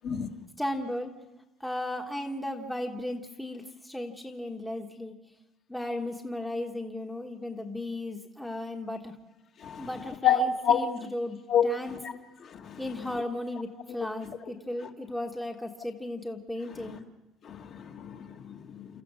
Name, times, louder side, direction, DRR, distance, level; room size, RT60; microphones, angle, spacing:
voice 1, 0.6-1.1 1.6-5.1 5.7-9.2 9.8-12.0 12.8-17.0, left 1 dB, 5° left, 1.3 m, -35 dB
voice 2, 10.2-10.9 11.5-11.7 12.0-12.1 12.4-12.8 17.4-18.9, left 7 dB, 45° left, 1.8 m, -28 dB
30.0 x 14.0 x 6.2 m
cardioid pair, 150°, 0 cm